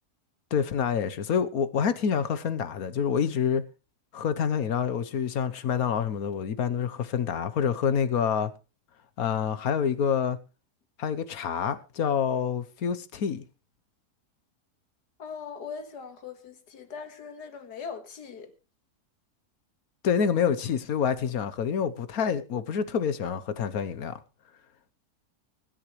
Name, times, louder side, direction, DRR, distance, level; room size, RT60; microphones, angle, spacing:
voice 1, 0.5-3.6 4.1-8.5 9.2-10.4 11.0-13.4 20.0-24.2, left 7 dB, 65° left, 1.4 m, -27 dB
voice 2, 15.2-18.5, left 6 dB, 90° left, 2.2 m, -40 dB
24.5 x 10.0 x 3.2 m
omnidirectional pair, 1.7 m